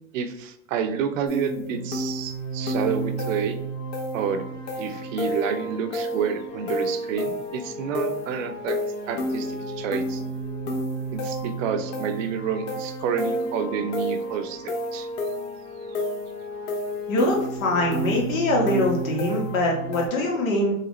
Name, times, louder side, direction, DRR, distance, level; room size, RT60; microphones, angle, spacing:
voice 1, 0.1-3.6 4.1-4.4 4.8-8.8 9.1-9.5 9.8-10.2 11.1-15.1, right 7 dB, 70° right, 8 dB, 0.6 m, -29 dB
sound 1, 1.2-20.1, equal, 65° left, 1.0 m, -31 dB
voice 2, 17.1-20.7, left 1 dB, 80° left, -1 dB, 1.4 m, -23 dB
3.9 x 2.5 x 3.0 m, 0.79 s
hypercardioid pair, 120°, 40 cm